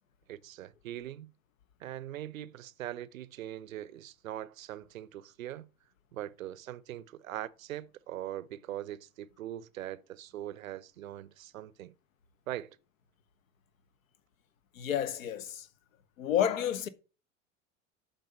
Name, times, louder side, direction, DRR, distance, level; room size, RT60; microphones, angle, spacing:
voice 1, 0.3-1.3 1.8-5.7 6.1-11.9 12.5-12.7, right 12 dB, 80° right, 0.6 m, -41 dB
voice 2, 14.7-15.7 16.2-16.9, left 10 dB, 75° left, 0.8 m, -30 dB
8.0 x 3.8 x 5.4 m
figure-of-eight pair, 80°, 40 cm